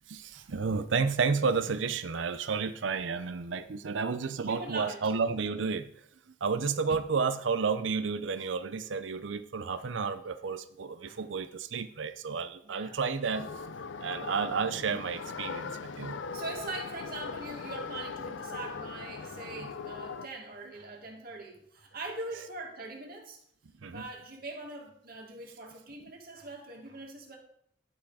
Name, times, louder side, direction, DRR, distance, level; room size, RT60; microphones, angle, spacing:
voice 1, 0.1-5.9 6.4-13.5 14.0-16.2 23.8-24.0, right 5 dB, 75° right, 11 dB, 0.6 m, -31 dB
voice 2, 4.4-5.0 11.0-11.2 12.6-13.0 16.3-23.4 23.9-27.4, right 2 dB, 50° right, 0 dB, 2.1 m, -42 dB
sound 1, 13.3-20.3, left 5 dB, 75° left, 0.5 m, -40 dB
11.0 x 6.0 x 4.9 m, 0.69 s
head